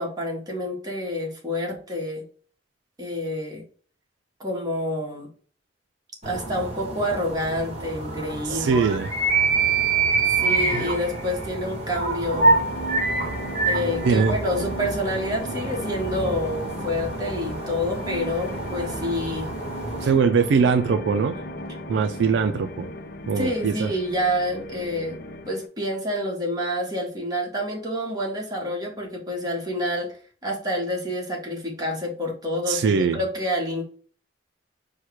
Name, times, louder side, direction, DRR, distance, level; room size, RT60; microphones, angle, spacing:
voice 1, 0.0-2.2 3.0-3.6 4.4-5.3 6.2-8.8 10.4-12.6 13.6-19.5 20.0-20.1 23.4-25.2 25.5-30.1 30.4-33.8, left 1 dB, 20° right, -1 dB, 1.3 m, -28 dB
sound 1, 6.2-20.2, right 3 dB, 35° right, 1.4 m, -26 dB
voice 2, 8.5-9.1 10.7-10.8 14.0-14.4 20.0-21.4 21.9-22.9 23.3-23.9 32.7-33.2, right 5 dB, 75° right, 9 dB, 0.4 m, -21 dB
sound 2, 12.3-25.7, left 1 dB, 60° left, 0.5 m, -37 dB
4.6 x 2.2 x 4.6 m, 0.44 s
head